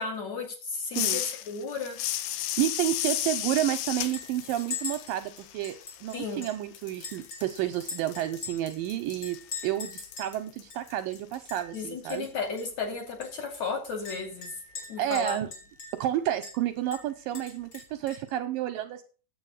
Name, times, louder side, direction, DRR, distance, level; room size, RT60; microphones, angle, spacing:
voice 1, 0.0-2.0 6.1-6.4 11.7-14.5 14.9-15.4, left 4 dB, 50° left, 2 dB, 3.5 m, -34 dB
sound 1, 0.9-6.5 6.8-11.6, left 12 dB, 80° left, 2.8 m, -35 dB
voice 2, 2.6-9.4 9.6-12.3 15.0-15.5 15.9-19.0, right 13 dB, 80° right, 8 dB, 2.1 m, -30 dB
Chink clink, 3.0-3.3 3.6-3.7 4.1-6.6 7.0-8.8 9.2-10.3 10.7-10.8 11.1-11.8 12.1-12.3 12.6-12.7 13.2-16.1 16.4-16.6 16.9-18.3, left 4 dB, 30° left, 3.7 m, -41 dB
9.2 x 8.0 x 6.4 m, 0.37 s
omnidirectional pair, 4.5 m